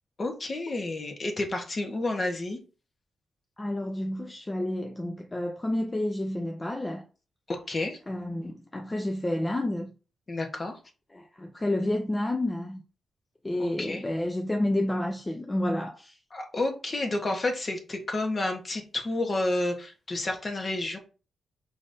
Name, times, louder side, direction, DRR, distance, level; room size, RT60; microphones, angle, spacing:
voice 1, 0.2-2.6 7.5-8.0 10.3-10.7 13.6-14.0 16.3-21.0, left 2 dB, 35° left, 1.2 m, -30 dB
voice 2, 3.6-7.1 8.1-9.9 11.1-12.8 13.4-16.2, left 1 dB, 20° left, 0.5 m, -30 dB
5.0 x 3.9 x 2.7 m
cardioid pair, 90°, 0 cm